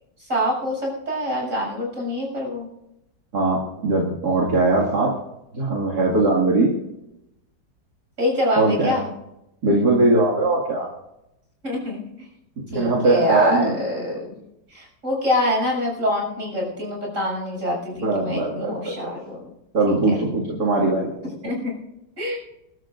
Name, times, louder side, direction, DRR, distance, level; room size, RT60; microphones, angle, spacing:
voice 1, 0.2-2.7 8.2-9.1 11.6-12.3 12.7-14.4 14.7-19.5 19.9-20.2 21.4-21.7 22.2-22.4, left 1 dB, 45° right, -2 dB, 7.5 m, -25 dB
voice 2, 3.3-5.1 5.5-6.7 8.6-9.0 9.6-10.9 12.7-13.7 18.0-18.9 19.7-21.1, right 2 dB, 60° right, -3 dB, 2.8 m, -20 dB
29.5 x 12.5 x 2.6 m, 0.87 s
omnidirectional pair, 2.0 m